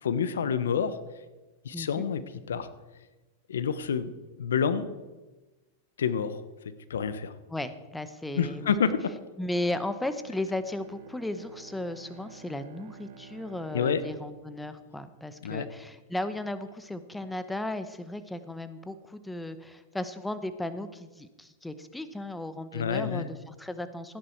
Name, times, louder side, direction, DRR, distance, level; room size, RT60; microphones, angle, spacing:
voice 1, 0.0-1.0 1.6-2.2 2.5-2.7 3.5-4.1 4.4-4.9 6.0-6.4 6.6-7.3 8.3-9.1 13.7-14.0 15.4-15.6 22.7-23.3, left 7 dB, 85° left, 14 dB, 1.0 m, -28 dB
voice 2, 1.7-2.1 7.5-8.7 9.4-24.2, left 1 dB, 5° left, 11 dB, 1.0 m, -35 dB
Bowed string instrument, 10.2-15.8, right 6 dB, 70° right, 1.8 m, -51 dB
15.5 x 10.5 x 4.6 m, 1.2 s
hypercardioid pair, 115°, 0 cm